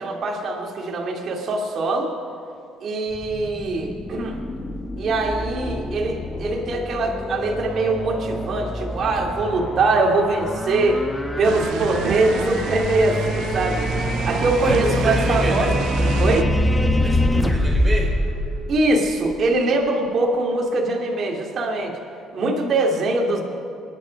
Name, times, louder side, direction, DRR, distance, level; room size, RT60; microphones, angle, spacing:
voice 1, 0.0-2.1 2.8-4.4 5.0-11.0 11.4-13.9 14.3-15.7 16.2-16.5 18.7-21.9 22.3-23.4, right 2 dB, 50° right, -1 dB, 2.6 m, -22 dB
sound 1, 3.1-19.3, left 1 dB, 10° left, 1.1 m, -25 dB
sound 2, 11.4-16.4, right 12 dB, 75° right, 0.4 m, -30 dB
voice 2, 14.6-15.8 17.0-18.3, right 1 dB, 20° right, -1 dB, 4.3 m, -28 dB
24.0 x 10.5 x 5.3 m, 2.4 s
cardioid pair, 105°, 0 cm